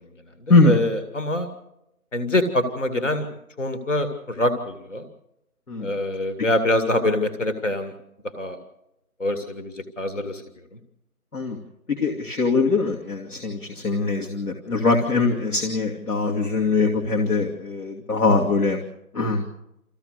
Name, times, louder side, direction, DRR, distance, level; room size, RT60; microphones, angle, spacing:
voice 1, 0.5-0.8 5.7-5.9 11.3-11.6 11.9-18.8 19.1-19.4, left 3 dB, 80° left, 0 dB, 2.7 m, -22 dB
voice 2, 1.1-1.5 2.1-3.3 3.6-5.0 5.8-7.9 8.4-8.6 9.2-10.4, left 1 dB, 55° left, 10 dB, 2.4 m, -24 dB
25.5 x 15.5 x 6.6 m, 0.85 s
figure-of-eight pair, 170°, 44 cm